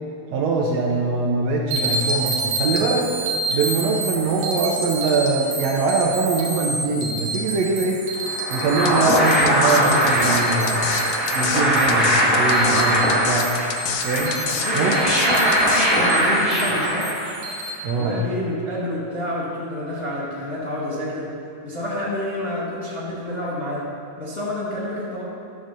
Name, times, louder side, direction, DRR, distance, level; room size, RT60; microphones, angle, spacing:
voice 1, 0.3-3.0 3.5-8.0 8.5-13.5 14.0-14.4 14.7-15.0 17.8-18.1, right 3 dB, 70° right, -1 dB, 1.7 m, -23 dB
sound 1, 1.7-17.7, right 2 dB, 90° right, 2.8 m, -30 dB
sound 2, 8.2-17.6, equal, 5° left, 0.7 m, -21 dB
sound 3, 8.9-15.9, left 9 dB, 85° left, 2.2 m, -29 dB
voice 2, 14.5-17.2 18.0-21.3 21.6-23.9 24.2-25.2, left 1 dB, 45° left, -7 dB, 0.7 m, -28 dB
11.5 x 3.9 x 6.7 m, 2.5 s
omnidirectional pair, 3.5 m